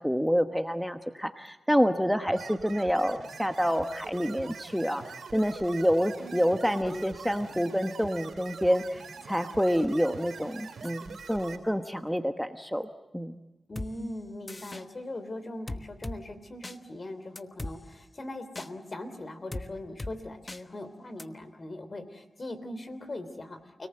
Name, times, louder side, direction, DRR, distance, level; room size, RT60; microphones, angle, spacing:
voice 1, 0.0-5.0 5.3-12.9 13.1-13.3, equal, ahead, 7 dB, 1.2 m, -27 dB
sound 1, 2.3-11.6, right 5 dB, 90° right, 3.7 m, -44 dB
voice 2, 13.7-23.9, left 1 dB, 50° left, 9 dB, 3.2 m, -40 dB
sound 2, 13.8-13.9 14.5-14.8 15.7-16.2 16.6-16.8 17.4-17.7 18.6-18.7 19.5-19.7 20.0-20.1 20.5-20.6 21.2-21.3, left 2 dB, 30° left, 1.1 m, -37 dB
29.5 x 18.5 x 7.8 m, 1.0 s
cardioid pair, 55°, 0 cm